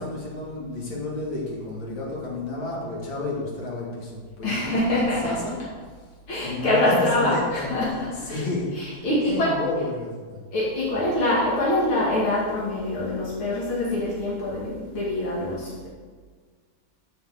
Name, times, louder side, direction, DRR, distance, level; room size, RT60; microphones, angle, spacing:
voice 1, 0.0-5.6 6.4-7.7 8.2-10.4, left 2 dB, 65° left, -5 dB, 3.6 m, -31 dB
voice 2, 4.4-5.4 6.3-8.5 8.7-9.6 10.5-15.9, left 1 dB, 80° left, -6 dB, 3.2 m, -24 dB
11.5 x 5.7 x 7.7 m, 1.5 s
omnidirectional pair, 2.3 m